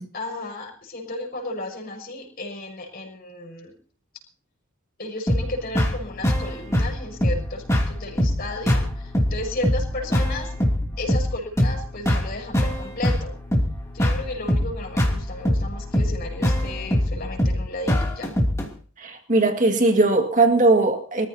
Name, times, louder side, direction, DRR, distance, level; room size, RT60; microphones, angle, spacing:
voice 1, 0.1-3.7 5.0-10.5 11.0-13.3 13.9-18.3, left 2 dB, 45° left, 6.1 m, -34 dB
sound 1, 5.3-18.7, equal, 15° left, 2.8 m, -23 dB
voice 2, 19.0-21.3, right 2 dB, 40° right, 2.1 m, -19 dB
25.0 x 14.5 x 2.9 m
head